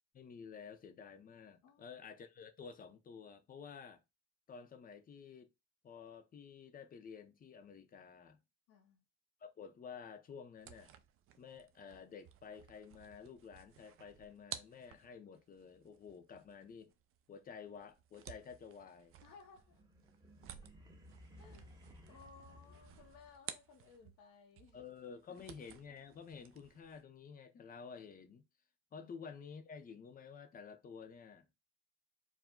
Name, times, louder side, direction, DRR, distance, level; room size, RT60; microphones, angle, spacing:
voice 1, 0.1-4.0 4.5-5.5 5.8-8.4 9.4-10.9 11.4-16.9 17.3-19.1 24.7-28.4 28.9-31.5, left 6 dB, 30° left, 0.6 m, -52 dB
voice 2, 1.6-1.9 8.7-9.0 19.2-19.8 21.4-21.8 22.1-24.8 25.4-25.5 29.0-29.1, left 5 dB, 85° left, 0.9 m, -60 dB
sound 1, 10.5-24.3 24.6-27.0, right 10 dB, 45° right, 0.4 m, -55 dB
sound 2, 19.4-23.7, left 1 dB, 15° right, 0.7 m, -59 dB
4.8 x 2.1 x 3.6 m
cardioid pair, 165°, 31 cm